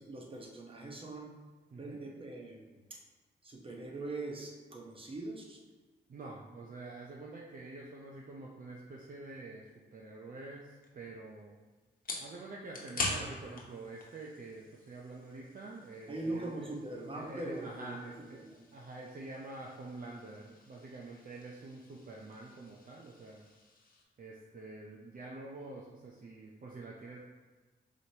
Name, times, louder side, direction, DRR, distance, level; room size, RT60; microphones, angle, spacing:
voice 1, 0.0-1.3 1.8-3.0 3.4-5.6 16.1-18.6, right 2 dB, 30° right, 0 dB, 1.0 m, -42 dB
voice 2, 6.1-11.6 12.2-16.7 17.1-18.4 18.7-23.4 24.2-27.2, right 2 dB, 50° right, -2 dB, 0.6 m, -47 dB
sound 1, 10.8-24.0, left 2 dB, 50° left, 1.1 m, -45 dB
4.9 x 3.1 x 2.9 m, 1.3 s
supercardioid pair, 55°, 19 cm